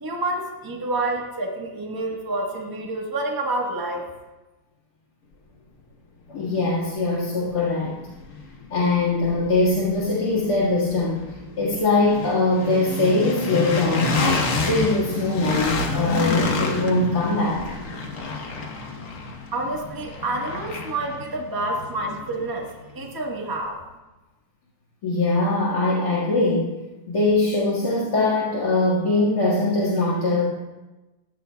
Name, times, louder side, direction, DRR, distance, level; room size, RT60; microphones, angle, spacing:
voice 1, 0.0-4.1 19.5-22.7 22.9-23.8, right 2 dB, 15° right, 0 dB, 1.2 m, -28 dB
voice 2, 6.3-8.0 8.7-11.2 11.6-14.2 14.6-17.7 25.0-26.8 27.1-30.5, left 2 dB, 75° left, -9 dB, 2.6 m, -22 dB
sound 1, 6.6-6.7 7.1-23.1, left 3 dB, 55° left, 1.4 m, -29 dB
15.5 x 11.5 x 2.3 m, 1.1 s
omnidirectional pair, 1.7 m